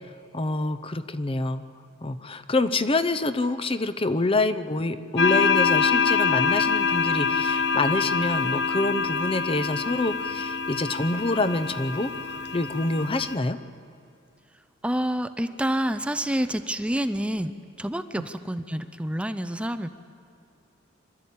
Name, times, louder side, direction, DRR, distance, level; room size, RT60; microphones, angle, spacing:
voice 1, 0.3-1.6 2.0-13.6 18.2-18.3, left 2 dB, 30° left, 12 dB, 0.7 m, -26 dB
sound 1, 5.2-13.4, left 5 dB, 60° left, 1.1 m, -25 dB
voice 2, 14.8-17.5 17.8-19.9, right 1 dB, 5° right, 11 dB, 0.5 m, -28 dB
26.5 x 13.0 x 8.4 m, 2.5 s
head